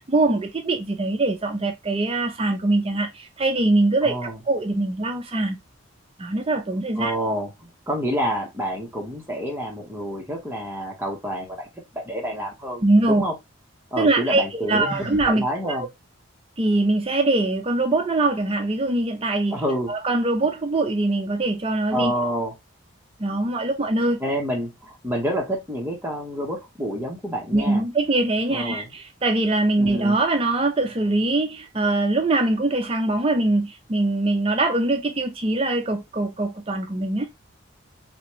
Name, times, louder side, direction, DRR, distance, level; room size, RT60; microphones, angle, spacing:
voice 1, 0.0-5.6 6.2-7.1 12.8-13.2 14.0-15.9 16.6-19.6 19.9-22.1 23.2-24.2 27.5-37.3, right 2 dB, 25° right, 0.4 m, -22 dB
voice 2, 4.0-4.4 7.0-11.7 11.9-13.3 13.9-14.9 15.2-15.9 19.5-19.9 21.9-22.5 24.2-27.8 28.5-28.9 29.8-30.2, equal, 10° right, 0.9 m, -28 dB
Sigh, 14.8-15.3, equal, 70° left, 2.2 m, -35 dB
3.3 x 3.0 x 3.0 m
head